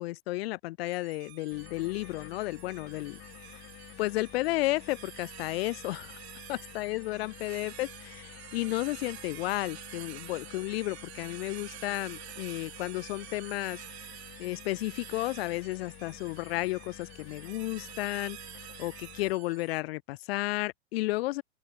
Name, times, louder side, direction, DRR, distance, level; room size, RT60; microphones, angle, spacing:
voice 1, 0.0-3.2 4.0-6.2 6.5-13.8 14.4-18.4 18.8-21.4, left 19 dB, 60° left, 0.5 m, -33 dB
sound 1, 0.8-19.8, right 17 dB, 65° right, 1.2 m, -48 dB
sound 2, 1.5-19.3, left 15 dB, 40° left, 5.2 m, -50 dB
open air
hypercardioid pair, 110°, 35 cm